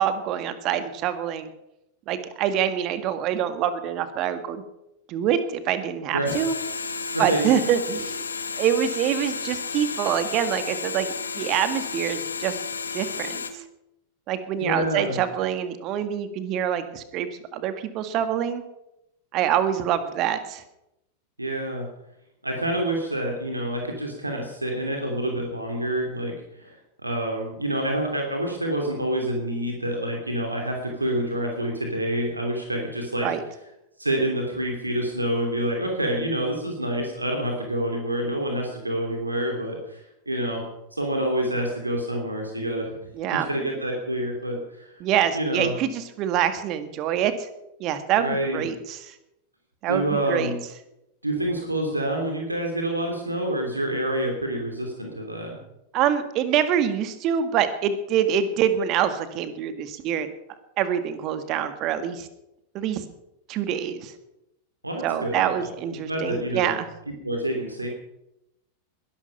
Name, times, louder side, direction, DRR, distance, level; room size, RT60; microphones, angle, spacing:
voice 1, 0.0-1.5 2.1-4.6 5.1-6.5 7.2-8.2 8.6-12.5 12.9-13.6 14.3-18.6 19.3-20.6 33.2-33.4 43.2-43.5 45.0-47.5 47.8-49.1 49.8-50.5 55.9-60.3 60.8-62.3 62.7-63.0 63.5-64.1 65.0-66.9, right 9 dB, 40° right, 11 dB, 1.8 m, -25 dB
sound 1, 6.3-13.5, left 5 dB, 75° left, 1.5 m, -32 dB
voice 2, 7.1-7.7 8.5-8.6 14.6-15.2 21.4-21.9 22.4-26.3 26.6-26.8 27.0-33.3 34.0-40.6 40.9-42.9 43.5-45.0 45.3-45.7 48.2-48.6 49.9-50.6 51.2-55.6 64.8-65.7 66.1-66.7 67.2-67.9, right 1 dB, 85° right, 1 dB, 3.0 m, -27 dB
21.0 x 11.5 x 5.8 m, 0.87 s
figure-of-eight pair, 90°, 0 cm